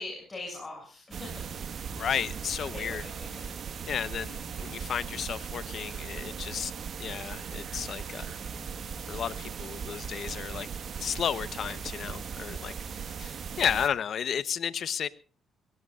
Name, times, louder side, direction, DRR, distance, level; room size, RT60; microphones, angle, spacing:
voice 1, 0.0-2.1 2.7-3.5, left 2 dB, 25° left, 7.2 m, -42 dB
sound 1, 1.1-13.9, right 6 dB, 55° right, 1.5 m, -38 dB
voice 2, 1.9-3.0 3.3-3.4 3.9-6.7 7.0-8.3 9.1-10.7 11.0-15.1, left 8 dB, 60° left, 0.9 m, -33 dB
23.0 x 19.0 x 2.5 m
cardioid pair, 90°, 0 cm